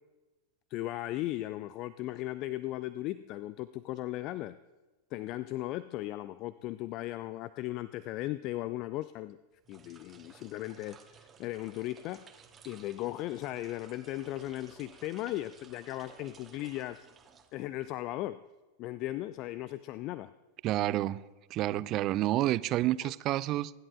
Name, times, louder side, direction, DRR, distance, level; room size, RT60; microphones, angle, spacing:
voice 1, 0.7-4.6 5.1-9.4 9.7-12.2 12.6-17.1 17.5-18.4 18.8-20.3 23.0-23.1, left 15 dB, 40° left, 16 dB, 0.3 m, -37 dB
sound 1, 9.5-18.0, right 6 dB, 20° right, 1.2 m, -57 dB
voice 2, 20.6-21.2 21.5-23.7, right 15 dB, 35° right, 19 dB, 0.4 m, -29 dB
24.5 x 11.0 x 2.4 m, 1.2 s
figure-of-eight pair, 90°, 0 cm